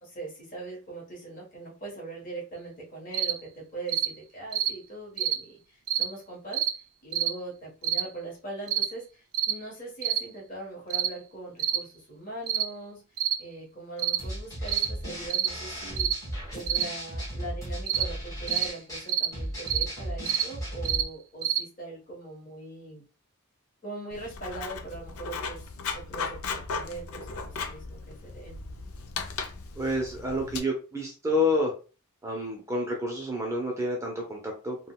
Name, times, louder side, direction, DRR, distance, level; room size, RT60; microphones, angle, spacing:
voice 1, 0.0-6.7 7.0-13.0 13.4-16.1 16.5-23.0 23.8-28.6, right 2 dB, 40° left, -2 dB, 1.2 m, -41 dB
sound 1, 3.1-3.4 3.9-4.1 4.5-4.7 5.2-5.4 5.9-6.1 6.5-6.8 7.1-7.3 7.8-8.1 8.7-8.9 9.3-9.6 10.0-10.2 10.9-11.1 11.6-11.8 12.5-12.7 13.2-13.4 14.0-14.2 14.7-14.9 15.3-15.5 16.0-16.2 16.7-16.9 17.9-18.1 18.5-18.7 19.1-19.3 19.7-19.9 20.3-20.5 20.9-21.1 21.4-21.6, right 10 dB, 70° right, 0.4 m, -27 dB
sound 2, 14.2-21.0, equal, 15° left, 1.4 m, -36 dB
Writing, 24.1-30.6, left 5 dB, 75° left, 0.4 m, -37 dB
voice 2, 29.8-31.7 32.2-34.8, left 1 dB, 15° right, 0 dB, 0.5 m, -29 dB
3.7 x 2.2 x 2.2 m, 0.34 s
head